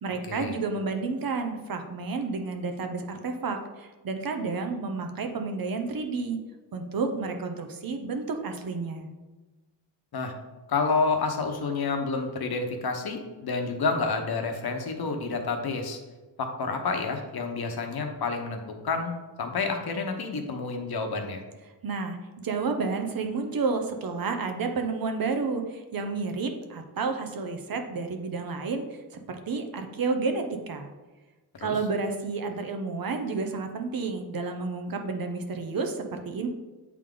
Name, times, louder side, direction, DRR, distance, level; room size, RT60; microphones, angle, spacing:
voice 1, 0.0-6.4 6.7-9.1 21.8-30.9 31.6-36.5, right 4 dB, 55° right, 5 dB, 0.8 m, -31 dB
voice 2, 10.7-16.0 16.4-19.1 19.4-21.4 31.6-31.8, left 4 dB, 60° left, 4 dB, 1.0 m, -29 dB
8.4 x 3.6 x 3.8 m, 1.2 s
wide cardioid pair, 120°, 42 cm